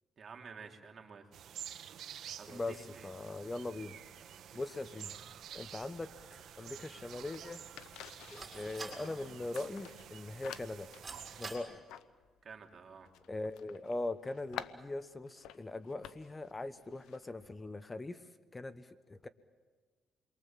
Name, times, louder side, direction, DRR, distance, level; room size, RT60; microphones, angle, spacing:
voice 1, 0.2-1.3 2.4-3.1 12.4-13.1, right 5 dB, 45° right, 3 dB, 3.3 m, -51 dB
sound 1, 1.3-11.6, right 9 dB, 70° right, 1.4 m, -50 dB
voice 2, 2.5-4.0 4.5-5.1 5.5-6.1 6.6-7.6 8.3-10.9 11.4-11.8 13.3-18.2 18.5-19.3, left 2 dB, 20° left, 12 dB, 1.0 m, -41 dB
sound 2, 4.0-17.8, left 11 dB, 90° left, 1.0 m, -53 dB
sound 3, 5.2-11.6, right 3 dB, 30° right, 6.2 m, -52 dB
29.0 x 23.0 x 7.5 m, 1.4 s
cardioid pair, 90°, 0 cm